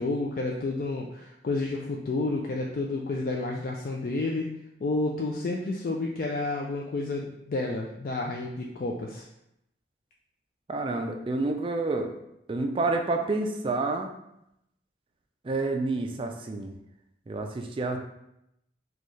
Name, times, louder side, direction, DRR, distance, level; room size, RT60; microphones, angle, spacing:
voice 1, 0.0-4.5 4.8-9.3, left 2 dB, 50° left, 0 dB, 0.3 m, -30 dB
voice 2, 10.7-12.1 12.5-14.1 15.4-16.7 17.3-18.0, right 3 dB, 30° right, 4 dB, 0.3 m, -28 dB
4.2 x 2.3 x 3.1 m, 0.82 s
head